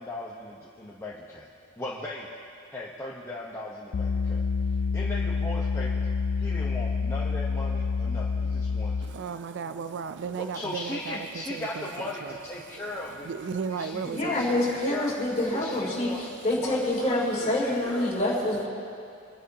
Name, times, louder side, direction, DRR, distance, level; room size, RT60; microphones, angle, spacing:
voice 1, 0.0-1.5 1.8-2.3 2.7-4.4 4.9-6.1 6.4-9.1 10.3-13.3 13.7-15.3 15.5-16.3 16.6-18.1, left 1 dB, 15° left, -5 dB, 1.0 m, -38 dB
sound 1, 3.9-9.2, left 4 dB, 75° left, 0.4 m, -28 dB
voice 2, 9.1-11.2 11.5-11.9 12.2-12.3 12.7-14.7, right 6 dB, 55° right, 11 dB, 0.4 m, -35 dB
voice 3, 14.0-16.1 16.4-18.7, left 1 dB, 35° left, -5 dB, 3.6 m, -26 dB
26.5 x 10.5 x 2.9 m, 2.5 s
head